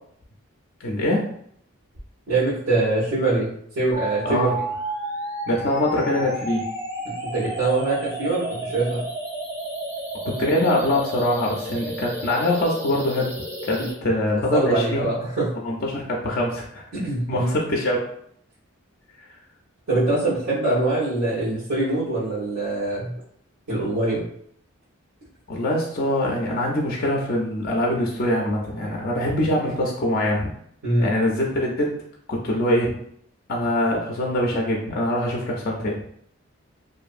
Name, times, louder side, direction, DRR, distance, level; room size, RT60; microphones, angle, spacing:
voice 1, 0.8-1.2 4.2-4.6 5.5-6.6 10.2-13.3 13.7-15.0 15.6-16.8 17.3-18.0 25.5-30.5 31.0-31.9 32.3-33.0 33.5-36.0, left 1 dB, 45° left, -1 dB, 0.4 m, -23 dB
voice 2, 2.3-4.5 7.0-9.0 14.3-15.5 16.9-17.5 19.9-23.1 23.7-24.3 30.8-31.1, right 2 dB, 85° right, -10 dB, 1.0 m, -23 dB
sound 1, 3.9-13.9, right 1 dB, 10° right, 0.5 m, -32 dB
2.6 x 2.5 x 2.4 m, 0.66 s
head